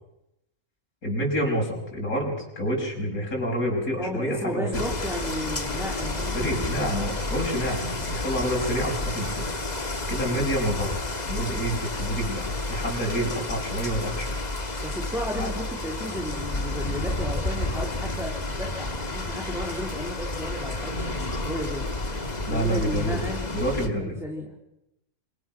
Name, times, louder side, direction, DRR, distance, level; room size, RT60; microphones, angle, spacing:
voice 1, 1.0-4.8 6.3-9.6 10.1-10.9 11.3-14.3 15.3-15.5 22.5-23.2 23.5-24.2, equal, 75° left, -2 dB, 6.4 m, -28 dB
voice 2, 4.0-6.3 6.6-7.0 10.3-10.5 14.8-21.9 22.5-23.5 23.9-24.6, left 1 dB, ahead, -1 dB, 3.4 m, -34 dB
sound 1, 4.7-23.9, left 2 dB, 30° left, 1.9 m, -31 dB
28.0 x 22.5 x 6.2 m, 0.85 s
omnidirectional pair, 1.5 m